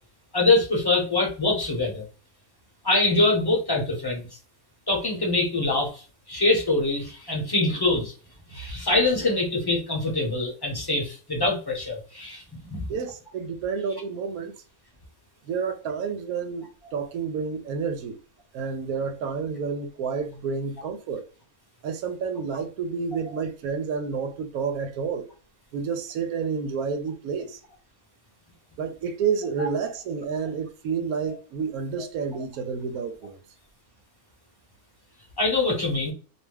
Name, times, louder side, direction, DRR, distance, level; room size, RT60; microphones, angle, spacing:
voice 1, 0.3-2.1 2.8-4.2 4.9-8.1 8.5-12.9 29.6-29.7 35.4-36.1, left 2 dB, 20° left, 0.7 m, -24 dB
voice 2, 12.9-14.5 15.4-18.2 18.5-21.3 21.8-25.3 25.7-27.6 28.8-33.4, right 5 dB, 85° right, 1.0 m, -30 dB
2.6 x 2.2 x 3.2 m
omnidirectional pair, 1.5 m